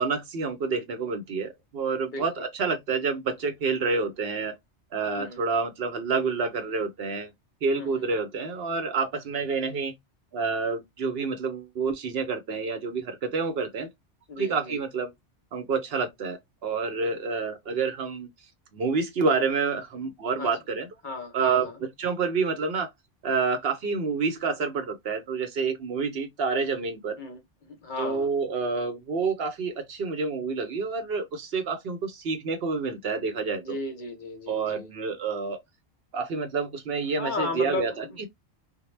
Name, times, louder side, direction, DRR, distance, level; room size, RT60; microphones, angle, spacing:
voice 1, 0.0-4.5 4.9-7.3 7.6-9.9 10.3-13.9 14.4-15.1 15.5-18.3 18.7-20.9 21.3-21.7 22.0-22.9 23.2-27.2 28.0-33.8 34.5-35.6 36.1-38.3, right 4 dB, 65° right, 0.8 m, -28 dB
voice 2, 7.7-8.1 14.3-14.8 20.4-20.5 21.0-21.7 27.2-27.4 27.7-28.3 33.5-34.9 37.2-38.3, left 3 dB, 55° left, 0.6 m, -34 dB
2.0 x 2.0 x 3.1 m
omnidirectional pair, 1.2 m